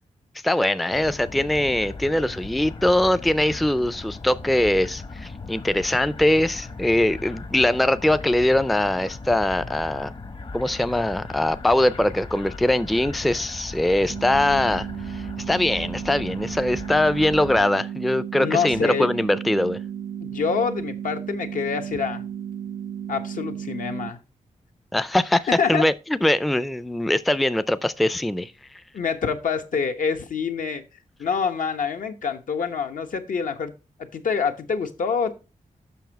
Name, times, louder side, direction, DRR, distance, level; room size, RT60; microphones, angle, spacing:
voice 1, 0.4-10.1 10.5-14.9 15.1-19.8 24.9-25.9 26.2-28.5, left 1 dB, ahead, 0.4 m, -22 dB
sound 1, 0.9-17.6, left 3 dB, 40° left, 0.9 m, -38 dB
sound 2, 14.1-24.1, right 9 dB, 70° right, 0.6 m, -34 dB
voice 2, 18.4-19.1 20.2-22.2 23.1-24.2 25.5-25.8 28.9-30.8 31.2-33.7 34.1-35.3, left 6 dB, 75° left, 1.0 m, -26 dB
7.0 x 6.1 x 4.5 m
wide cardioid pair, 120°, 14 cm